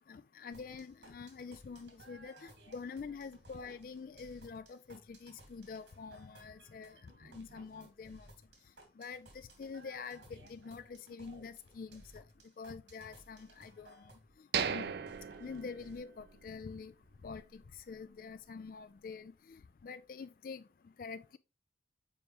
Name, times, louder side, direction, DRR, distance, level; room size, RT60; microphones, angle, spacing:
voice 1, 0.1-8.3 9.0-12.2 12.6-14.1 14.4-14.9 15.4-16.9 17.2-20.6 21.0-21.4, left 5 dB, 50° left, 0.3 m, -46 dB
sound 1, 0.5-16.0, right 1 dB, 80° right, 2.0 m, -59 dB
sound 2, 14.5-16.5 16.8-16.9 17.4-17.6, right 7 dB, 65° right, 0.5 m, -37 dB
7.0 x 4.9 x 3.0 m
head